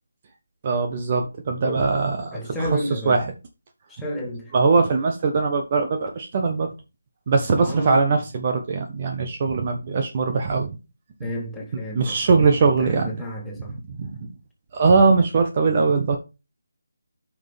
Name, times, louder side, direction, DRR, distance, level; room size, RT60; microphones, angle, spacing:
voice 1, 0.6-2.7 3.1-3.2 4.5-6.7 7.3-10.7 11.9-13.1 14.0-14.1 14.7-16.2, right 4 dB, 30° right, 1.2 m, -21 dB
voice 2, 2.3-3.2 3.9-4.5 7.6-8.2 11.2-13.7, equal, 5° left, 2.1 m, -31 dB
8.9 x 5.9 x 3.5 m
figure-of-eight pair, 155°, 0 cm